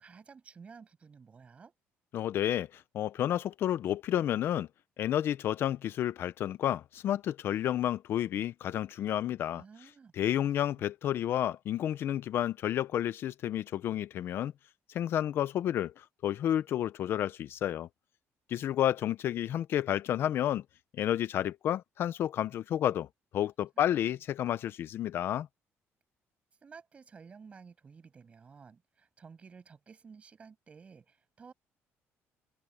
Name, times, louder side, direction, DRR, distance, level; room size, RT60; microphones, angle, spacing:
voice 1, 0.0-1.7 9.5-10.8 23.8-24.0 26.6-31.5, right 5 dB, 25° right, 6.6 m, -53 dB
voice 2, 2.1-4.7 5.0-9.6 10.2-14.5 14.9-17.9 18.5-20.6 21.0-23.1 23.3-25.5, left 11 dB, 50° left, 0.5 m, -31 dB
cardioid pair, 175°, 5 cm